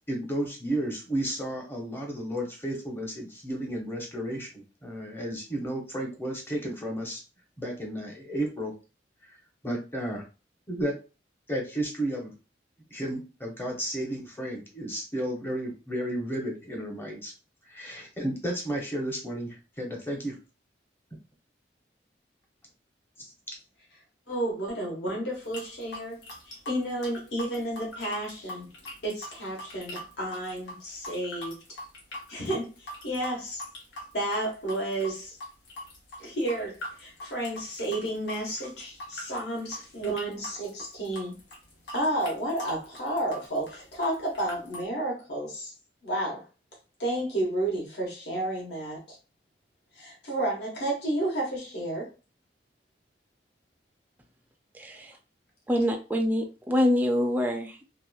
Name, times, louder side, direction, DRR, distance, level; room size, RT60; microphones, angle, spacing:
voice 1, 0.1-7.2 7.6-8.7 9.2-9.4 9.6-10.2 10.7-10.9 11.5-12.3 12.9-17.3 17.6-20.4 23.2-23.5, right 1 dB, 15° left, 0 dB, 0.7 m, -33 dB
voice 2, 24.3-26.2 26.4-28.7 29.0-31.6 32.3-33.6 34.1-35.4 36.2-41.3 41.9-45.7 46.0-46.4 47.0-49.2 49.9-52.1, right 1 dB, 65° left, -2 dB, 1.2 m, -31 dB
sound 1, 25.3-44.8, left 1 dB, 85° left, 1.1 m, -42 dB
voice 3, 54.7-55.2 55.7-57.8, left 1 dB, 10° right, 3 dB, 0.3 m, -25 dB
2.8 x 2.5 x 2.3 m, 0.32 s
head